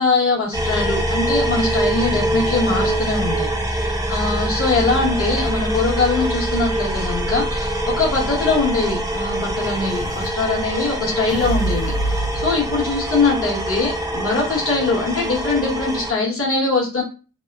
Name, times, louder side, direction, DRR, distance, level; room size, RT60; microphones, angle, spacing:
voice 1, 0.0-17.0, left 3 dB, 40° left, -2 dB, 1.1 m, -22 dB
sound 1, 0.5-16.1, right 1 dB, 10° right, 0.4 m, -24 dB
Explosion, 6.9-10.3 11.3-13.3, right 1 dB, 75° left, 1.0 m, -29 dB
2.9 x 2.0 x 2.3 m, 0.33 s
wide cardioid pair, 150°, 34 cm